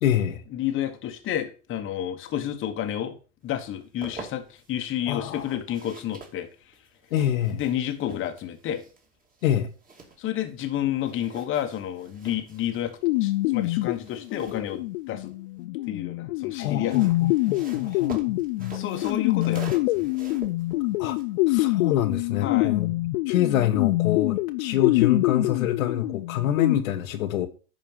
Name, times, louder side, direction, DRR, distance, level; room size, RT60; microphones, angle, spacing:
voice 1, 0.0-0.4 5.1-5.5 7.1-7.6 9.4-9.7 16.6-18.7 21.0-21.2 21.5-23.0 23.3-27.5, left 10 dB, 65° left, 1.4 m, -26 dB
voice 2, 0.5-3.2 3.4-6.5 7.5-8.8 10.2-15.3 15.9-17.1 18.7-20.1 22.4-22.8, left 11 dB, 30° left, 1.4 m, -30 dB
sound 1, 3.6-4.7 5.3-10.7 11.0-15.6 16.6-22.2, right 3 dB, 20° right, 2.4 m, -46 dB
sound 2, 13.0-26.7, left 19 dB, 45° left, 0.5 m, -25 dB
10.5 x 4.4 x 5.6 m
hypercardioid pair, 120°, 43 cm